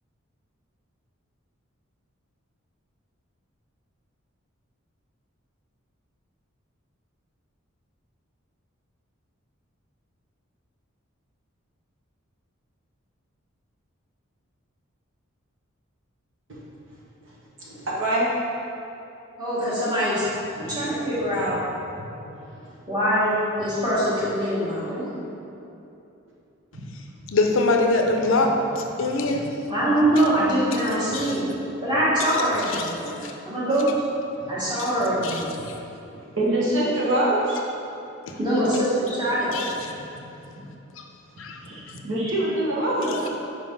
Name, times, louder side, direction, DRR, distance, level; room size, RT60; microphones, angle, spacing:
voice 1, 17.7-18.3 22.2-22.3 26.7-26.8 29.3-29.4 34.4-34.5 36.4-37.6 40.6-40.7 41.6-43.3, right 1 dB, 65° right, -7 dB, 1.3 m, -24 dB
voice 2, 19.4-20.2 20.6-21.6 22.9-25.2 29.7-31.5 31.8-33.1 33.4-34.0 34.5-35.5 38.4-39.6, right 1 dB, 20° right, -9 dB, 1.5 m, -23 dB
voice 3, 27.3-29.5 31.1-31.3 32.2-32.3 32.7-32.9 33.2-33.3 35.2-35.8 38.3-38.4 39.5-39.9 41.0-41.1 41.4-41.6 43.1-43.3, left 2 dB, 65° left, 2 dB, 0.5 m, -24 dB
4.7 x 3.9 x 5.2 m, 2.8 s
head